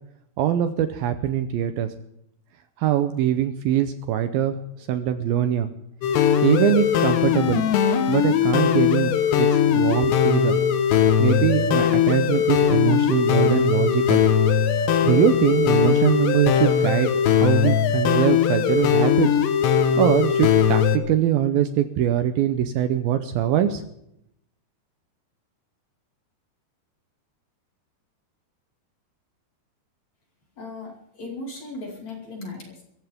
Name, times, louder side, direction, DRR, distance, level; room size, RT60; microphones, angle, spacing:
voice 1, 0.4-1.9 2.8-5.7 6.4-7.6 8.1-10.6 11.2-14.2 15.0-17.1 17.3-19.3 20.0-23.8, right 10 dB, 75° right, 9 dB, 2.5 m, -22 dB
sound 1, 6.0-21.0, left 8 dB, 90° left, 3.4 m, -20 dB
voice 2, 30.6-32.8, left 2 dB, 40° left, -1 dB, 6.1 m, -37 dB
24.5 x 14.5 x 3.7 m, 0.76 s
omnidirectional pair, 4.8 m